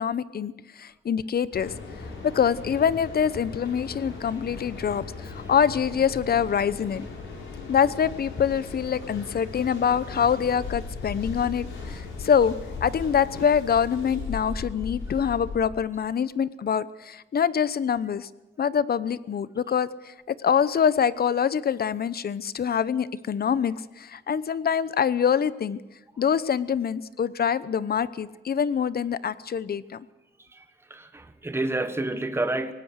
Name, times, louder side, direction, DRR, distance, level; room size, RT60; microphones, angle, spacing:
voice 1, 0.0-1.7 2.2-7.0 7.7-12.5 12.8-18.3 18.6-25.8 26.2-30.1, left 7 dB, 50° left, 17 dB, 0.9 m, -25 dB
Mechanical fan, 1.5-15.6, left 4 dB, 90° left, 5.7 m, -38 dB
voice 2, 30.9-32.7, right 2 dB, 10° right, 9 dB, 1.4 m, -29 dB
24.5 x 18.5 x 6.6 m, 1.0 s
cardioid pair, 95°, 20 cm